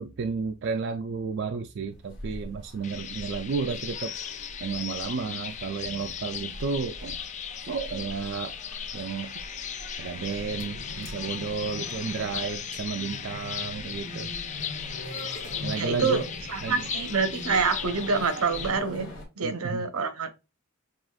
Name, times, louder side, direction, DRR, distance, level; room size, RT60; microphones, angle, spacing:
voice 1, 0.0-4.1 4.6-7.2 7.7-8.6 8.9-9.3 10.0-14.3 14.6-14.7 15.6-16.3 16.6-16.9 19.4-19.8, right 5 dB, 55° right, 0.4 m, -32 dB
sound 1, 1.9-19.3, left 1 dB, 60° left, 1.8 m, -42 dB
sound 2, 2.8-18.7, left 8 dB, 35° left, 0.4 m, -37 dB
voice 2, 15.8-16.2 16.5-19.1 19.4-20.3, right 4 dB, 85° right, 0.8 m, -26 dB
7.4 x 2.5 x 2.3 m
head